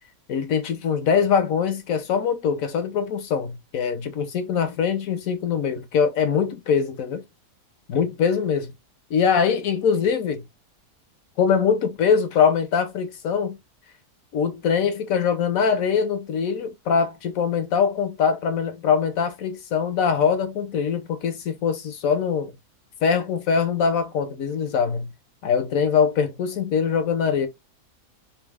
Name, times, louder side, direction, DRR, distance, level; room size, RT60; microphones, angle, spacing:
voice 1, 0.3-7.2 7.9-8.7 9.1-10.4 11.4-13.6 14.3-22.5 23.0-25.1 25.4-27.5, left 6 dB, 65° left, 1.2 m, -23 dB
3.5 x 2.8 x 3.3 m
omnidirectional pair, 1.7 m